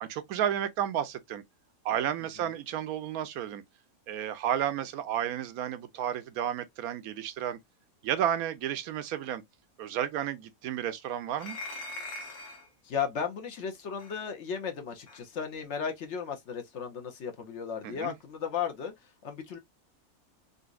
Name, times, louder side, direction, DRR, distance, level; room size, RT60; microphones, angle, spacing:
voice 1, 0.0-1.4 1.8-3.6 4.1-7.6 8.0-9.4 9.8-11.6 17.8-18.1, right 10 dB, 80° right, 1.1 m, -32 dB
sound 1, 11.4-12.7 14.0-14.1 15.1-15.2, left 2 dB, 85° left, 1.5 m, -41 dB
voice 2, 12.8-19.6, left 7 dB, 60° left, 0.9 m, -35 dB
4.0 x 2.4 x 2.4 m
omnidirectional pair, 1.5 m